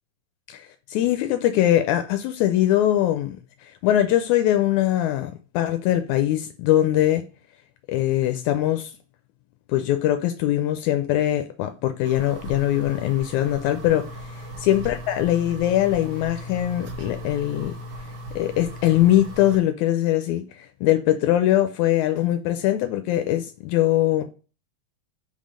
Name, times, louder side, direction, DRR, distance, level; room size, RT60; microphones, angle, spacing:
voice 1, 0.5-7.2 7.9-8.9 9.7-14.3 14.6-17.8 18.4-24.2, left 13 dB, 80° left, 1.9 m, -22 dB
sound 1, 12.0-19.6, equal, 80° right, 2.2 m, -38 dB
5.2 x 3.7 x 4.9 m
omnidirectional pair, 3.4 m